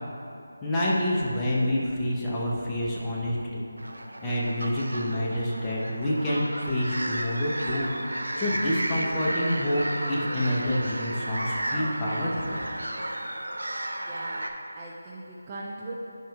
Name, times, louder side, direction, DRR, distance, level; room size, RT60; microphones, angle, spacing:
voice 1, 0.6-3.6 4.2-7.9 8.4-9.8 10.1-12.6, left 1 dB, 10° left, -8 dB, 0.8 m, -27 dB
sound 1, 3.8-14.5, right 1 dB, 75° right, 0.6 m, -33 dB
voice 2, 14.0-15.9, right 2 dB, 20° right, -4 dB, 0.4 m, -40 dB
10.0 x 5.6 x 2.3 m, 2.8 s
figure-of-eight pair, 155°, 0 cm